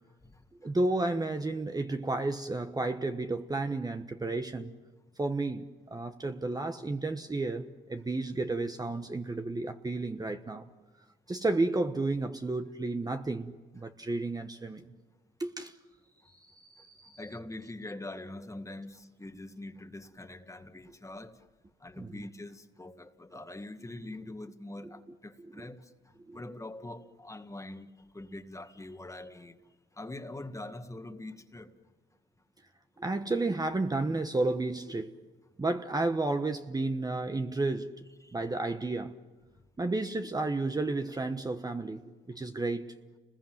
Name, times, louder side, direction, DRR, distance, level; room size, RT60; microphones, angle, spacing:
voice 1, 0.6-4.7 5.2-10.7 11.3-14.9 15.4-15.8 16.3-17.2 22.0-22.2 25.6-25.7 26.3-26.4 33.0-35.1 35.6-38.0 38.3-39.2 39.8-42.9, right 2 dB, 20° right, 1.1 m, -32 dB
voice 2, 17.2-21.4 21.8-25.8 26.3-27.9 28.1-29.6 30.0-31.7 38.2-38.4, left 2 dB, 15° left, 1.8 m, -43 dB
30.0 x 21.0 x 7.8 m
cardioid pair, 90°, 20 cm